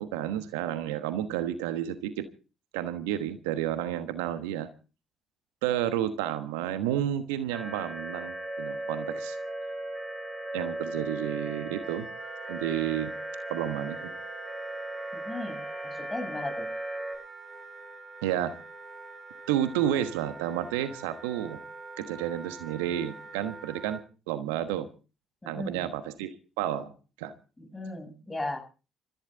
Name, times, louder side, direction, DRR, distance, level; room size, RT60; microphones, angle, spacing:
voice 1, 0.0-2.3 2.7-4.7 5.6-9.4 10.5-12.1 12.5-13.1 13.5-14.1 18.2-18.6 19.5-21.6 22.0-24.0 24.3-24.9 25.5-26.9 27.2-27.3, right 11 dB, 75° right, 12 dB, 1.2 m, -31 dB
sound 1, 7.5-17.2, right 1 dB, 10° right, 6.8 m, -37 dB
Wind instrument woodwind instrument, 11.8-24.0, right 3 dB, 35° right, 2.8 m, -46 dB
voice 2, 15.1-16.7 25.4-25.8 27.6-28.6, left 2 dB, 15° left, 6 dB, 8.0 m, -36 dB
23.0 x 14.5 x 3.8 m, 0.35 s
figure-of-eight pair, 50°, 0 cm